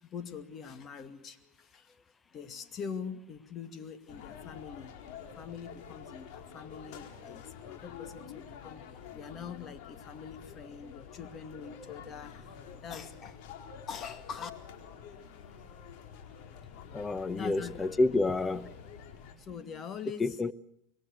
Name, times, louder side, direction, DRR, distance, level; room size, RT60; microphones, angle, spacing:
voice 1, 0.0-2.0 2.3-8.8 9.1-13.4 13.9-14.5 17.3-17.7 19.4-20.5, left 6 dB, 35° left, 2.2 m, -43 dB
sound 1, 4.1-19.3, left 7 dB, 65° left, 4.3 m, -48 dB
voice 2, 16.9-18.7 20.2-20.5, left 2 dB, 15° left, 0.8 m, -29 dB
26.0 x 22.0 x 6.5 m
supercardioid pair, 125°, 0 cm